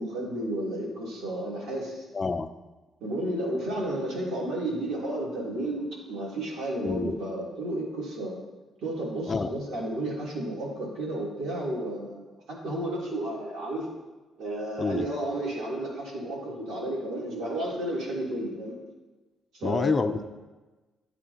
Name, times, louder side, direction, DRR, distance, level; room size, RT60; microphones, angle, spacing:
voice 1, 0.0-2.0 3.0-8.4 8.8-13.9 14.4-18.7 19.5-20.2, right 1 dB, 80° right, -3 dB, 3.2 m, -32 dB
voice 2, 2.1-2.5 6.8-7.2 9.3-9.5 14.8-15.1 19.6-20.2, left 4 dB, 30° left, 10 dB, 0.5 m, -28 dB
15.5 x 8.4 x 2.9 m, 1.2 s
cardioid pair, 90°, 0 cm